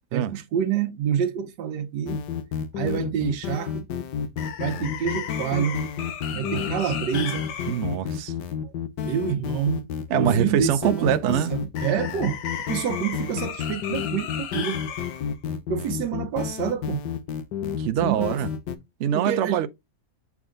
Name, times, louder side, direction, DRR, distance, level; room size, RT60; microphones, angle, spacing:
voice 1, 0.1-2.2 2.7-3.9 4.6-5.8 6.3-7.5 8.6-8.7 9.0-9.9 10.2-12.4 12.7-14.8 15.7-17.0 18.0-18.4 19.1-19.6, right 9 dB, 85° right, 1.4 m, -27 dB
sound 1, 2.1-18.8, left 8 dB, 80° left, 1.4 m, -30 dB
voice 2, 6.3-6.9 7.7-8.3 10.1-11.6 17.8-18.5 19.0-19.7, right 9 dB, 70° right, 0.7 m, -24 dB
7.2 x 3.6 x 3.7 m
omnidirectional pair, 1.8 m